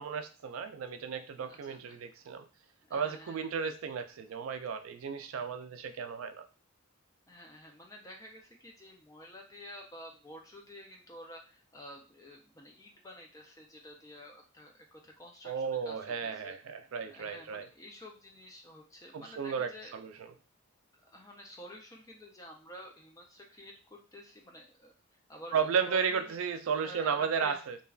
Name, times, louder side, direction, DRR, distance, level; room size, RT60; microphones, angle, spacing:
voice 1, 0.0-2.4 2.9-6.4 15.4-17.7 19.1-20.1 25.5-27.8, right 6 dB, 70° right, 8 dB, 0.4 m, -34 dB
voice 2, 1.4-2.0 2.9-3.7 7.3-16.6 17.1-19.9 20.9-26.4 26.8-27.6, equal, 15° left, 2 dB, 0.4 m, -50 dB
3.3 x 2.3 x 2.3 m, 0.34 s
head